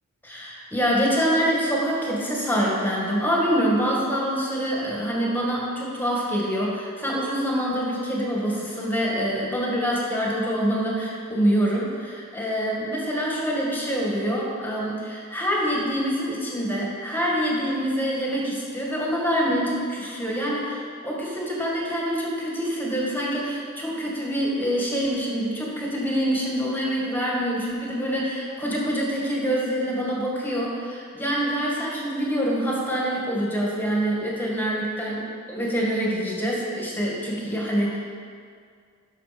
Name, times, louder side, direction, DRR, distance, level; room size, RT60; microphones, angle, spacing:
voice 1, 0.2-38.0, equal, 10° left, -4 dB, 2.0 m, -25 dB
12.5 x 6.0 x 5.4 m, 2.1 s
head